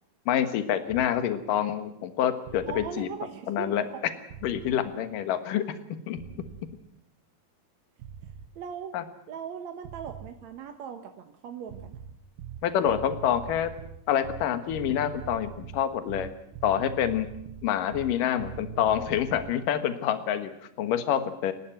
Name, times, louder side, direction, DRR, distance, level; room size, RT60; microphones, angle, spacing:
voice 1, 0.3-3.1 3.5-3.8 4.4-5.8 6.1-6.2 8.9-9.0 12.6-13.7 14.1-16.3 16.6-17.3 17.6-20.5 20.8-21.5, left 10 dB, 70° left, 10 dB, 2.9 m, -27 dB
sound 1, 0.9-1.1 2.5-2.9 4.3-4.8 6.1-6.7 8.0-8.5 9.8-10.4 11.7-19.6, right 9 dB, 85° right, 3.0 m, -42 dB
voice 2, 2.7-4.0 8.2-9.0 9.3-12.0, right 7 dB, 60° right, 6 dB, 2.2 m, -39 dB
28.0 x 12.0 x 9.2 m, 0.79 s
omnidirectional pair, 4.1 m